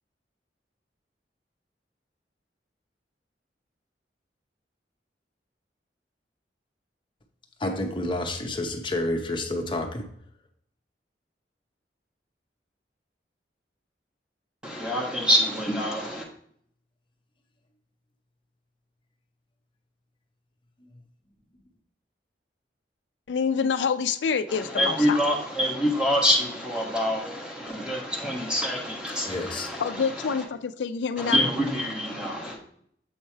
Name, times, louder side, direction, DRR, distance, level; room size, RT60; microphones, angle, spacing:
voice 1, 7.6-10.0 29.3-29.7, left 1 dB, 30° left, 0.7 m, -29 dB
voice 2, 14.6-16.2 24.5-30.4 31.2-32.6, equal, 5° right, 1.1 m, -26 dB
voice 3, 23.3-25.2 29.8-31.4, left 6 dB, 85° left, 0.4 m, -27 dB
7.2 x 3.3 x 4.3 m
head